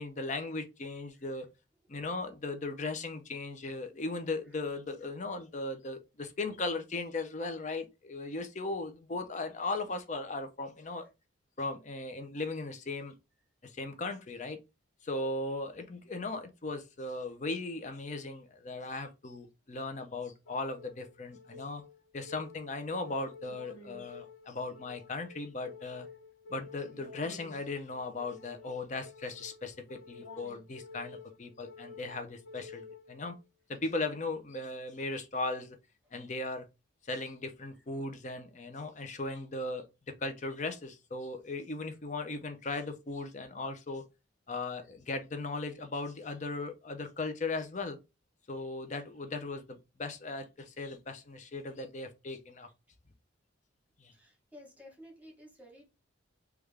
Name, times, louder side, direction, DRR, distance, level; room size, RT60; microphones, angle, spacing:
voice 1, 0.0-1.5 1.9-11.1 11.6-13.1 13.6-14.6 15.0-21.8 22.1-26.1 26.5-33.4 33.7-35.8 36.1-36.6 37.1-39.9 40.2-44.0 44.5-48.0 48.5-49.6 50.0-52.7 54.0-54.1, left 3 dB, 40° left, 0.5 m, -37 dB
sound 1, 20.4-33.4, left 4 dB, 90° left, 1.0 m, -51 dB
voice 2, 54.1-55.8, left 1 dB, 5° right, 1.1 m, -53 dB
3.3 x 2.4 x 3.3 m
head